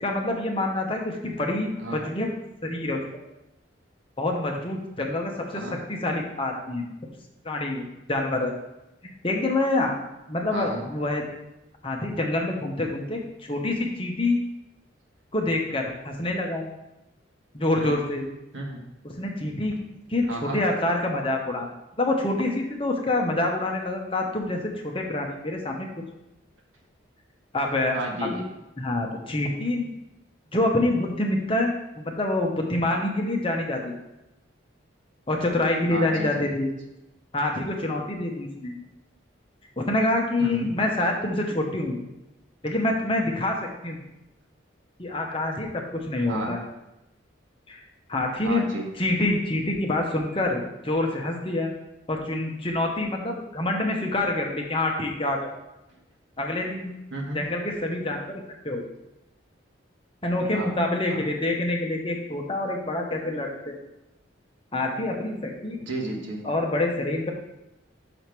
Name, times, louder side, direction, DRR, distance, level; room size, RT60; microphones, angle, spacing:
voice 1, 0.0-2.3 2.6-3.0 4.2-5.6 5.9-6.8 7.4-8.5 9.0-10.0 10.3-11.3 11.8-14.4 15.3-16.7 17.5-18.3 19.0-19.8 20.1-21.7 22.0-25.9 27.5-28.0 28.8-29.9 30.5-31.7 32.0-33.9 35.3-36.7 37.3-38.7 39.8-42.0 42.6-43.6 43.8-44.0 45.0-46.6 47.7-47.8 48.1-48.6 49.0-51.7 52.1-55.5 56.4-56.9 57.3-58.8 60.2-63.8 64.7-65.8 66.4-67.3, left 2 dB, 25° left, 1 dB, 0.9 m, -26 dB
voice 2, 10.5-10.9 17.8-18.0 18.5-18.8 20.3-20.6 27.9-28.5 35.9-36.4 40.4-40.7 46.3-46.6 48.4-48.9 57.1-57.4 60.5-60.7 61.1-61.2 65.9-66.4, right 1 dB, 80° right, 1 dB, 1.5 m, -32 dB
6.0 x 5.0 x 6.0 m, 0.93 s
head